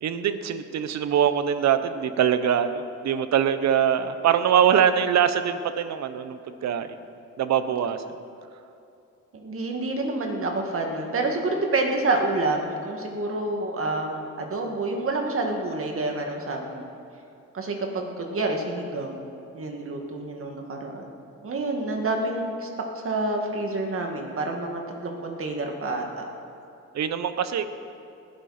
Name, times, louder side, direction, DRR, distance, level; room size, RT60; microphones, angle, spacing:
voice 1, 0.0-7.0 7.4-8.0 26.9-27.7, right 8 dB, 65° right, 11 dB, 0.9 m, -23 dB
voice 2, 9.3-16.9 17.5-19.2 19.5-21.1 21.4-22.7 23.0-26.3, right 2 dB, 45° right, 2 dB, 2.2 m, -28 dB
19.5 x 11.5 x 4.4 m, 2.6 s
cardioid pair, 90°, 30 cm